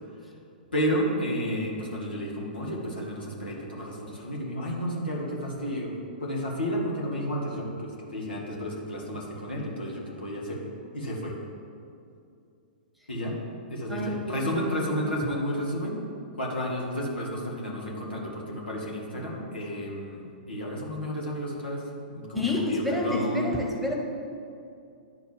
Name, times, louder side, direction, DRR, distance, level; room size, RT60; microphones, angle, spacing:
voice 1, 0.7-5.9 6.2-10.6 10.9-11.3 13.1-13.4 13.7-16.0 16.4-23.5, equal, 85° left, -3 dB, 2.4 m, -31 dB
voice 2, 13.9-14.9 15.2-15.3 22.3-23.9, left 1 dB, ahead, 0 dB, 1.3 m, -29 dB
10.5 x 4.4 x 7.5 m, 2.5 s
figure-of-eight pair, 115°, 5 cm